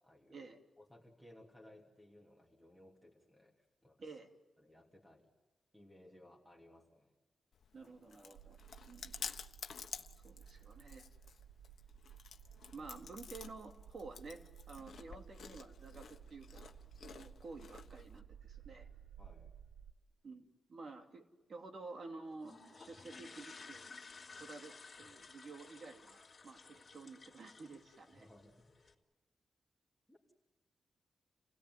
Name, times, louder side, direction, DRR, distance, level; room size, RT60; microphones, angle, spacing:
voice 1, 0.0-0.5 0.8-4.2 4.6-5.3 5.7-7.1 12.8-12.9 19.2-19.5 28.2-28.7 30.1-30.3, left 1 dB, ahead, -2 dB, 3.0 m, -61 dB
Chewing mastication, 7.5-18.2, left 7 dB, 65° left, 1.3 m, -51 dB
voice 2, 7.7-8.6 8.9-9.3 10.0-11.0 12.7-14.4 14.7-16.7 17.0-18.9 20.2-23.9 24.4-28.2, right 3 dB, 55° right, 4 dB, 2.9 m, -51 dB
sound 1, 8.3-19.9, right 8 dB, 90° right, 1.2 m, -56 dB
sound 2, 22.4-28.9, left 4 dB, 35° left, 3.7 m, -55 dB
29.0 x 17.0 x 9.6 m, 1.2 s
cardioid pair, 100°, 0 cm